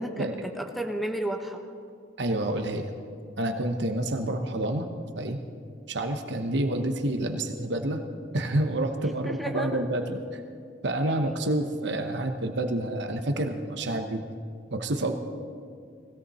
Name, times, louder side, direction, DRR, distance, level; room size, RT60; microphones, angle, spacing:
voice 1, 0.0-1.6 9.2-9.8 11.0-11.3, right 1 dB, ahead, 4 dB, 1.1 m, -33 dB
voice 2, 2.2-2.9 3.4-4.9 5.2-5.4 5.9-8.0 8.3-10.4 10.8-14.2 14.7-15.1, right 1 dB, 65° right, 5 dB, 1.0 m, -28 dB
20.0 x 16.5 x 4.2 m, 2.3 s
head